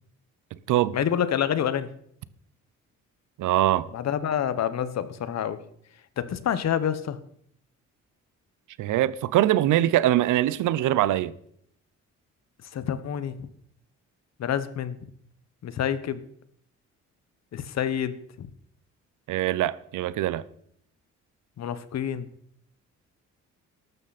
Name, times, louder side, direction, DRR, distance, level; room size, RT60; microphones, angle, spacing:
voice 1, 0.9-1.9 3.9-5.6 6.2-7.2 12.7-13.5 14.4-15.0 15.6-16.2 17.5-18.5 21.6-22.3, left 9 dB, 60° left, 1.2 m, -28 dB
voice 2, 3.4-3.9 8.8-11.3 19.3-20.4, right 13 dB, 85° right, 0.7 m, -23 dB
14.0 x 12.5 x 4.2 m
cardioid pair, 90°, 30 cm